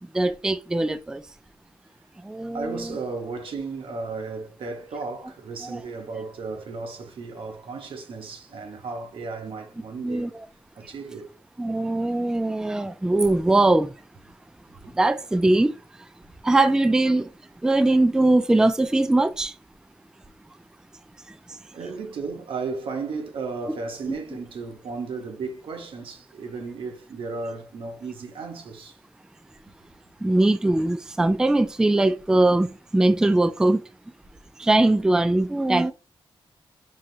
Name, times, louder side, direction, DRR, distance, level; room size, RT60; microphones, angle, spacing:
voice 1, 0.1-1.2 2.2-3.0 5.7-5.8 10.0-10.3 11.6-13.9 14.9-15.8 16.4-17.3 17.6-19.5 30.2-33.8 34.6-35.9, right 2 dB, 5° right, 0.3 m, -21 dB
voice 2, 2.5-10.3 10.7-11.3 21.7-29.0, right 4 dB, 75° right, 1.0 m, -34 dB
5.3 x 2.9 x 2.7 m
wide cardioid pair, 130°, 9 cm